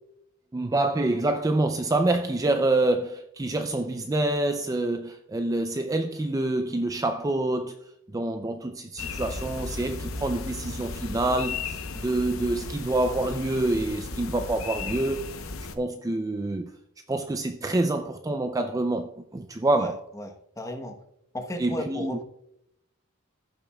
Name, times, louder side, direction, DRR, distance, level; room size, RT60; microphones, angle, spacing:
voice 1, 0.5-15.4 15.7-16.7 17.1-20.0 21.6-22.2, right 2 dB, 15° right, 0.4 m, -27 dB
sound 1, 9.0-15.8, left 3 dB, 70° left, 0.8 m, -35 dB
voice 2, 19.7-21.0 21.3-22.2, left 1 dB, 15° left, 1.0 m, -35 dB
15.0 x 7.1 x 2.3 m
head